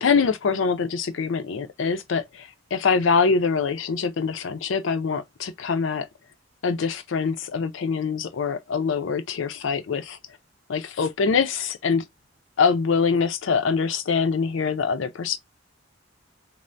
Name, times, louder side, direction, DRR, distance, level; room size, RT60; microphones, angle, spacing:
voice 1, 0.0-2.2 2.7-5.2 5.7-6.0 6.6-10.2 10.7-12.0 12.6-15.4, left 5 dB, 85° left, 0.5 m, -24 dB
3.2 x 2.0 x 2.5 m
head